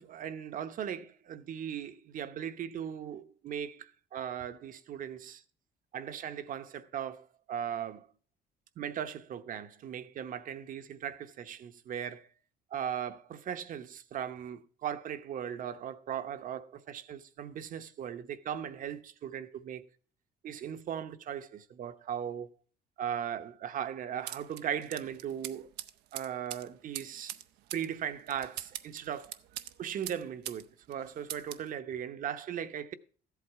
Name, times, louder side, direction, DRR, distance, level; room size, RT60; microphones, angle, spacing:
voice 1, 0.0-5.4 5.9-8.1 8.8-12.3 12.7-19.9 20.4-22.5 23.0-25.7 26.1-27.4 27.7-29.4 29.8-32.9, right 9 dB, 55° right, 0.8 m, -38 dB
sound 1, 24.3-30.6 30.9-31.7, right 13 dB, 85° right, 0.6 m, -43 dB
14.0 x 8.2 x 4.6 m
cardioid pair, 110°, 17 cm